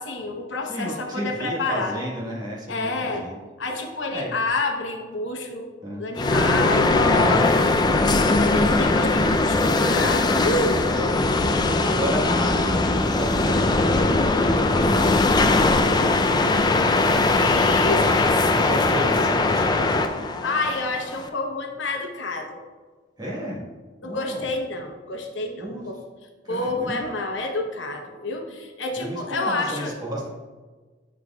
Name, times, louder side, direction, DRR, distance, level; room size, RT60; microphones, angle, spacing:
voice 1, 0.0-2.0 2.7-3.3 3.6-5.7 6.0-7.7 7.9-10.8 17.3-19.1 20.4-22.6 24.0-26.0 26.5-29.9, left 3 dB, 75° left, 3 dB, 0.9 m, -29 dB
voice 2, 0.7-3.4 4.1-4.4 5.8-6.1 8.4-8.8 10.8-17.3 17.8-18.1 18.5-20.0 23.2-23.6 24.0-24.5 25.6-25.9 26.4-27.1 29.0-30.3, right 1 dB, 20° right, -4 dB, 1.4 m, -33 dB
sound 1, 6.2-21.3, left 2 dB, 20° left, 0.4 m, -20 dB
9.2 x 6.1 x 2.3 m, 1.4 s
head